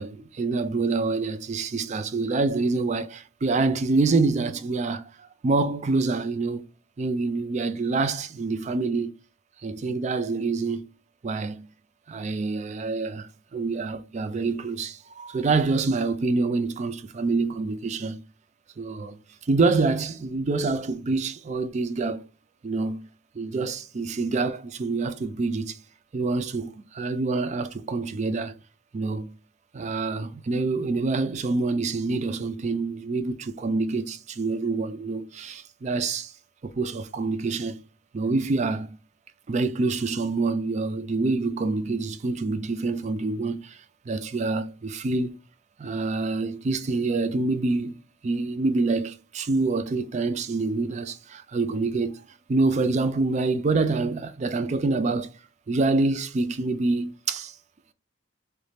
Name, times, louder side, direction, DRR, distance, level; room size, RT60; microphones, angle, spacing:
voice 1, 0.0-6.7 7.0-9.1 9.6-10.9 11.2-11.7 12.1-18.2 18.8-22.3 22.6-23.1 23.3-25.8 26.1-28.6 28.9-29.3 29.7-36.3 36.6-37.8 38.1-39.0 39.5-45.4 45.8-52.2 52.5-55.3 55.7-57.6, right 3 dB, 35° right, 0.3 m, -26 dB
3.1 x 2.6 x 3.3 m
head